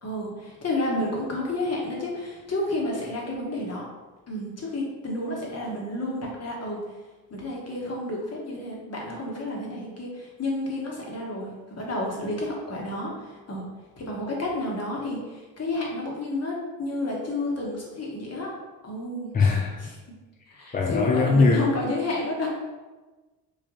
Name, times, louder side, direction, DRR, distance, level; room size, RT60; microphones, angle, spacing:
voice 1, 0.0-3.8 4.3-6.8 7.3-13.6 14.0-18.5 18.8-19.3 19.8-19.9 20.5-22.5, left 1 dB, 40° left, -2 dB, 1.2 m, -31 dB
voice 2, 19.3-19.8 20.7-21.7, left 4 dB, 25° left, 0 dB, 0.4 m, -21 dB
3.3 x 2.4 x 3.8 m, 1.2 s
supercardioid pair, 60°, 39 cm